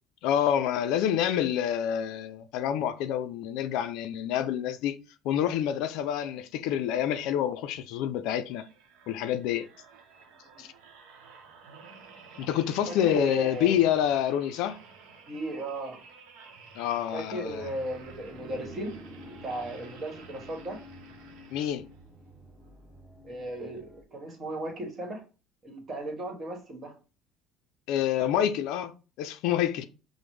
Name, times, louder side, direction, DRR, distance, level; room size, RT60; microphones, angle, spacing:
voice 1, 0.2-5.0 5.2-8.7 9.1-9.7 10.6-10.7 12.4-14.8 16.8-17.7 21.5-21.9 27.9-29.9, left 10 dB, 75° left, 0.3 m, -27 dB
sound 1, 8.5-22.1 22.6-22.8, right 5 dB, 80° right, 0.7 m, -52 dB
voice 2, 12.9-13.8 15.3-16.0 17.1-19.0 19.2-20.8 23.2-25.2 25.6-26.9, right 1 dB, 35° right, 1.3 m, -36 dB
sound 2, 17.5-24.0, equal, 5° left, 0.7 m, -49 dB
5.0 x 2.0 x 3.1 m
supercardioid pair, 100°, 0 cm